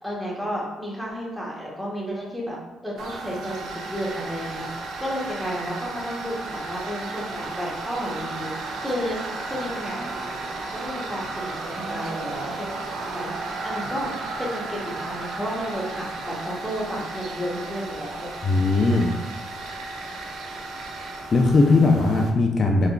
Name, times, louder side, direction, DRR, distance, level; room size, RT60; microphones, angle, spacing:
voice 1, 0.0-2.6 2.8-12.7 13.0-14.1 14.4-18.3, equal, 5° right, -5 dB, 0.9 m, -32 dB
Tools, 3.0-22.3, right 3 dB, 80° right, 0.4 m, -34 dB
voice 2, 18.4-19.2 21.3-22.9, left 3 dB, 40° left, 1 dB, 0.3 m, -19 dB
3.5 x 2.3 x 2.3 m, 1.0 s
cardioid pair, 90°, 0 cm